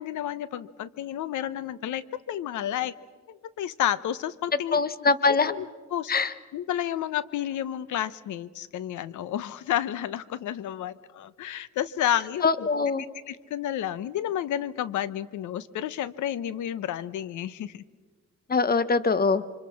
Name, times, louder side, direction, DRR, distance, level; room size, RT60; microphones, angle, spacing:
voice 1, 0.0-2.9 3.3-4.8 5.5-6.1 6.5-12.7 13.3-17.8, left 11 dB, 75° left, 17 dB, 0.9 m, -31 dB
voice 2, 4.7-5.5 6.1-6.3 12.4-13.0 18.5-19.4, left 4 dB, 30° left, 14 dB, 1.1 m, -23 dB
27.5 x 25.0 x 5.9 m, 1.4 s
cardioid pair, 90°, 30 cm